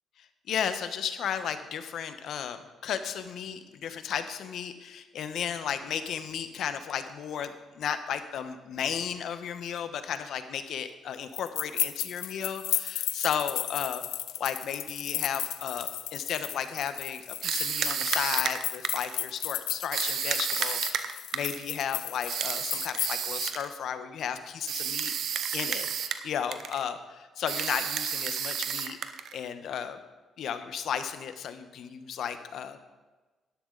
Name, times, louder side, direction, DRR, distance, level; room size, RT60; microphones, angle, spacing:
voice 1, 0.5-14.0 14.4-25.1 25.5-29.0 29.3-30.0 30.4-32.8, left 8 dB, 70° left, 10 dB, 1.0 m, -34 dB
sound 1, 11.3-23.5, left 13 dB, 85° left, 0.5 m, -34 dB
sound 2, 17.4-19.2 19.9-21.6 22.3-23.7 24.7-26.3 26.5-26.8 27.5-29.4, right 8 dB, 70° right, 0.8 m, -31 dB
12.0 x 11.5 x 3.9 m, 1.2 s
cardioid pair, 90°, 0 cm